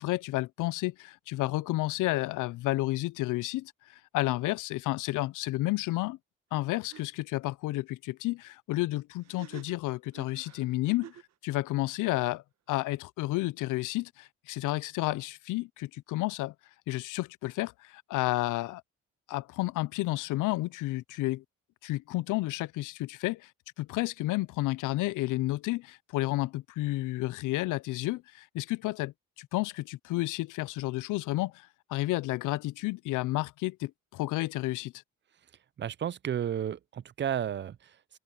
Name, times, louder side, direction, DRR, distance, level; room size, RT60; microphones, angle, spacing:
voice 1, 0.0-6.2 6.5-11.2 11.4-16.5 16.9-18.8 19.3-21.4 21.8-23.5 23.8-34.9, left 18 dB, 85° left, 0.5 m, -31 dB
sound 1, 6.5-6.6 6.9-7.0 9.2-11.3, right 11 dB, 60° right, 1.2 m, -49 dB
voice 2, 35.8-38.2, right 9 dB, 40° right, 0.5 m, -33 dB
open air
cardioid pair, 90°, 30 cm